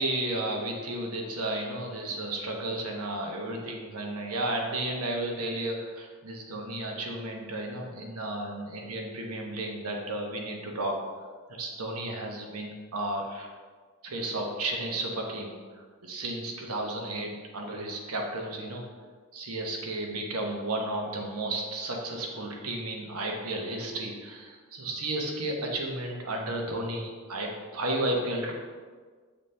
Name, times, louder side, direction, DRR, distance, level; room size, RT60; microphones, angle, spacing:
voice 1, 0.0-11.0 11.5-13.5 14.0-15.5 16.0-18.8 19.3-28.5, right 1 dB, 85° right, 1 dB, 1.0 m, -33 dB
7.2 x 4.1 x 3.3 m, 1.5 s
head